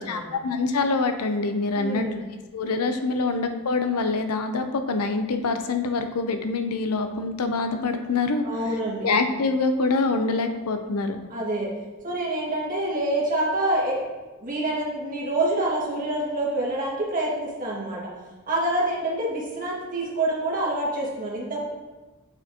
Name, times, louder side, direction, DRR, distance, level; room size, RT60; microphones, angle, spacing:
voice 1, 0.0-2.1 2.5-8.4 9.0-11.2, left 3 dB, 90° left, 7 dB, 0.6 m, -25 dB
voice 2, 1.7-2.2 8.4-9.1 11.3-11.7 12.0-14.0 14.4-18.0 18.5-21.6, right 1 dB, 40° right, -5 dB, 1.8 m, -27 dB
7.1 x 6.6 x 2.8 m, 1.2 s
head